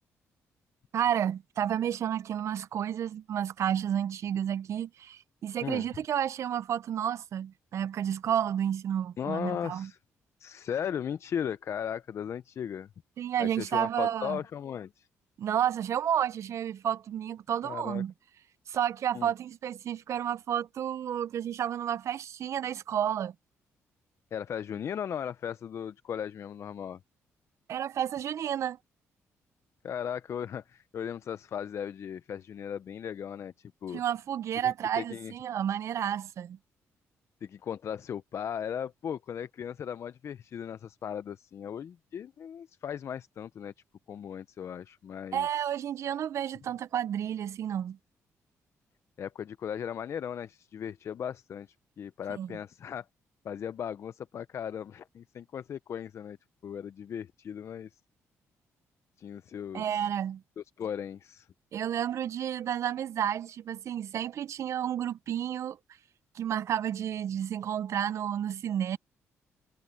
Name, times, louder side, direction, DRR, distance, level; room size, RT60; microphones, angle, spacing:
voice 1, 0.9-9.9 13.2-14.4 15.4-18.1 18.7-23.3 27.7-28.8 33.9-36.6 45.3-48.0 52.4-52.5 59.7-60.4 61.7-65.8 66.3-69.0, right 9 dB, 60° right, 0.4 m, -31 dB
voice 2, 9.2-10.0 10.4-12.9 13.4-15.1 17.6-18.0 19.1-19.3 24.3-27.0 29.8-34.0 34.5-35.3 37.4-43.7 44.1-45.5 49.2-53.1 53.4-56.4 56.6-58.0 59.2-60.0 60.6-61.5, left 8 dB, 55° left, 0.6 m, -37 dB
cardioid pair, 90°, 6 cm